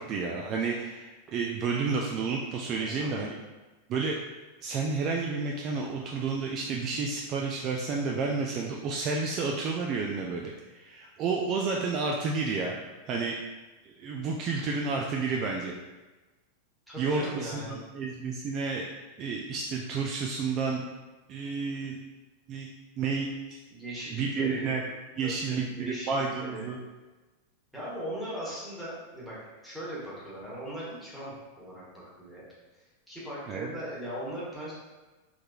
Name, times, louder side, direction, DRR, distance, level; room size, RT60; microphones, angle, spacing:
voice 1, 0.0-3.4 3.9-4.2 4.6-12.7 13.1-13.4 13.8-15.7 17.0-18.9 19.2-20.9 21.3-22.0 22.5-22.7 23.0-23.6 24.1-24.8 25.2-26.8 33.5-33.7, right 4 dB, 35° right, 0 dB, 0.3 m, -31 dB
voice 2, 2.8-3.3 16.9-17.8 23.7-24.7 25.2-26.7 27.7-29.4 29.6-32.4 33.1-34.7, equal, ahead, -8 dB, 1.3 m, -39 dB
3.5 x 3.2 x 2.3 m, 1.2 s
figure-of-eight pair, 90°, 0 cm